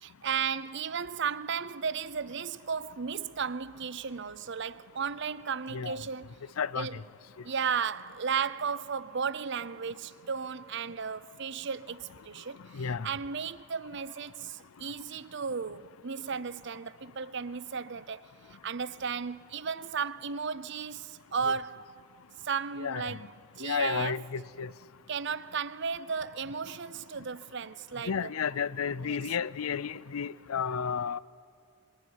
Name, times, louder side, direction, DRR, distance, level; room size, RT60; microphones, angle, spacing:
voice 1, 0.0-6.4 6.7-7.0 7.4-18.3 18.6-21.9 22.4-23.3 23.6-24.2 25.1-28.3 29.0-29.2, right 6 dB, 55° right, 0.6 m, -34 dB
voice 2, 6.6-6.9 12.7-13.1 21.5-21.6 22.8-23.2 23.6-24.7 28.0-31.2, left 6 dB, 85° left, 0.5 m, -32 dB
26.0 x 22.0 x 9.6 m
head